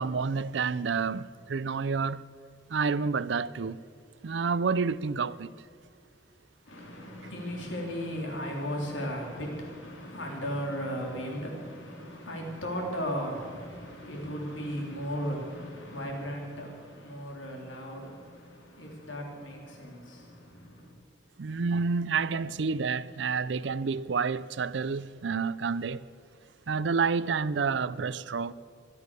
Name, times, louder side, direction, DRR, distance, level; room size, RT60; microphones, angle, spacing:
voice 1, 0.0-2.2 2.7-3.8 4.2-5.5 21.4-26.0 26.7-28.5, right 5 dB, 70° right, 0.5 m, -29 dB
voice 2, 6.7-21.0, equal, 85° left, 3.6 m, -36 dB
24.0 x 8.5 x 6.8 m
head